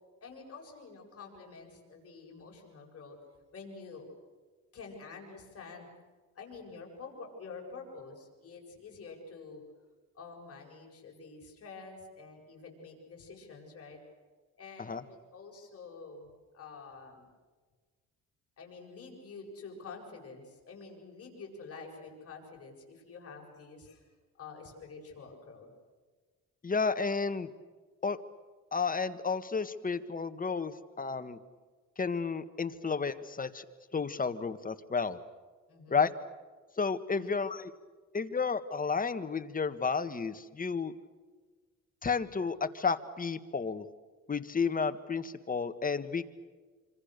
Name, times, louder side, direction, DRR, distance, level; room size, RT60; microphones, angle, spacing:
voice 1, 0.2-3.2 3.5-4.0 4.7-5.9 6.3-9.6 10.1-14.0 14.6-16.3 16.5-17.3 18.6-24.1 24.4-25.7 35.7-36.0 37.1-37.3, left 4 dB, 50° left, 0 dB, 7.9 m, -48 dB
voice 2, 26.6-27.5 28.0-28.2 28.7-31.4 32.0-33.6 33.9-35.2 35.9-36.1 36.8-37.7 38.1-40.9 42.0-43.8 44.3-46.3, left 5 dB, 30° left, 11 dB, 1.5 m, -32 dB
26.5 x 26.0 x 6.8 m, 1.4 s
cardioid pair, 90°, 30 cm